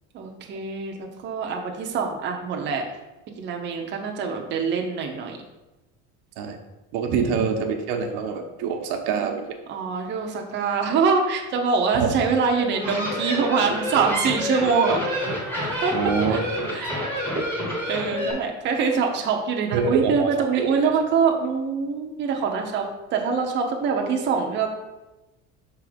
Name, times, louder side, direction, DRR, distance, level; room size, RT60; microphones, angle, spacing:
voice 1, 0.1-2.8 3.4-5.4 7.1-7.6 9.7-15.1 15.8-16.0 16.3-16.4 16.7-17.0 17.9-24.7, right 5 dB, 30° right, 2 dB, 0.6 m, -24 dB
voice 2, 6.9-9.4 11.9-12.1 15.9-16.7 17.3-17.4 19.7-20.3 20.5-20.7, right 6 dB, 90° right, 3 dB, 1.0 m, -25 dB
sound 1, 12.6-18.3, equal, 5° left, 1.0 m, -28 dB
5.6 x 3.6 x 5.0 m, 1.0 s
cardioid pair, 175°, 35 cm